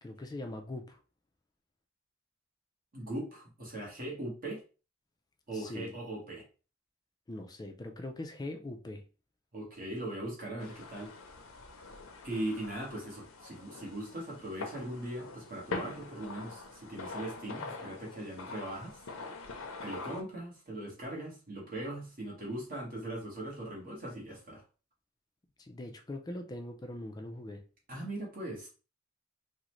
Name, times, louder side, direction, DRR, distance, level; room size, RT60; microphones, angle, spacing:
voice 1, 0.0-1.0 5.5-6.0 7.3-9.0 25.6-27.6, left 1 dB, 20° left, 4 dB, 0.3 m, -41 dB
voice 2, 2.9-4.6 5.5-6.4 9.5-11.1 12.2-19.0 19.8-24.6 27.9-28.7, right 1 dB, 45° right, -2 dB, 1.1 m, -40 dB
sound 1, 10.6-20.2, left 3 dB, 85° left, 0.6 m, -44 dB
3.7 x 2.1 x 3.0 m, 0.34 s
head